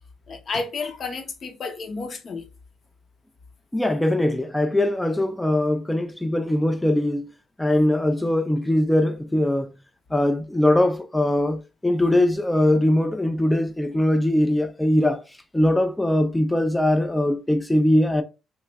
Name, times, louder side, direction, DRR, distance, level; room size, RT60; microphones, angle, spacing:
voice 1, 0.3-2.4, left 4 dB, 50° left, 0.8 m, -31 dB
voice 2, 3.7-7.3 7.6-9.7 10.1-15.2 15.5-18.2, left 1 dB, 10° left, 0.4 m, -21 dB
3.1 x 2.4 x 3.2 m
cardioid pair, 90°, 0 cm